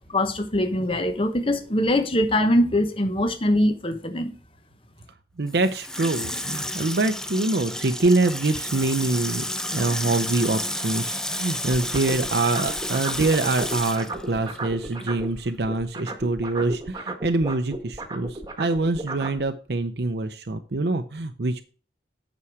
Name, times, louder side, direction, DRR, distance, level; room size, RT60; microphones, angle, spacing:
voice 1, 0.1-4.3, left 1 dB, 30° left, 1.0 m, -22 dB
voice 2, 5.4-9.4 9.7-21.6, right 2 dB, 65° right, 0.7 m, -25 dB
Water tap faucet / Sink (filling or washing), 5.5-15.2 15.5-15.6, left 1 dB, 5° left, 0.5 m, -31 dB
sound 1, 11.7-15.4 15.6-19.4, right 2 dB, 20° right, 1.4 m, -34 dB
8.5 x 6.2 x 4.7 m
head